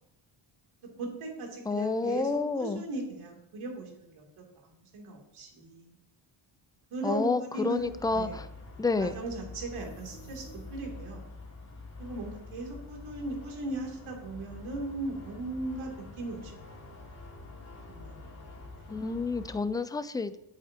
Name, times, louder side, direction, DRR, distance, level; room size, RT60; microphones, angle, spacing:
voice 1, 1.0-4.2 4.6-6.0 6.9-7.3 7.5-8.4 9.0-11.3 12.0-16.5 17.9-18.2 18.7-18.9, right 2 dB, 75° right, -1 dB, 3.1 m, -38 dB
voice 2, 1.7-2.8 7.0-8.5 8.8-9.2 18.9-20.4, left 3 dB, 10° left, 13 dB, 0.4 m, -29 dB
sound 1, 7.8-19.6, left 3 dB, 30° left, 2.9 m, -46 dB
sound 2, 9.6-11.2, left 3 dB, 70° left, 2.2 m, -51 dB
12.5 x 8.5 x 2.9 m, 0.85 s
cardioid pair, 90°, 49 cm